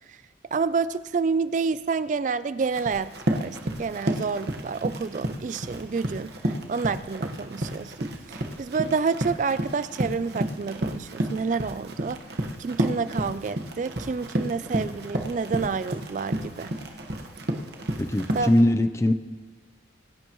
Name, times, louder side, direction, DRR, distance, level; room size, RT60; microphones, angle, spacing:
voice 1, 0.5-16.7 18.3-18.5, right 5 dB, 40° right, 14 dB, 0.3 m, -29 dB
Run, 2.6-18.6, right 1 dB, 55° right, 1.3 m, -31 dB
voice 2, 18.0-19.1, left 1 dB, 15° left, 11 dB, 0.5 m, -21 dB
26.0 x 11.5 x 3.1 m, 1.4 s
head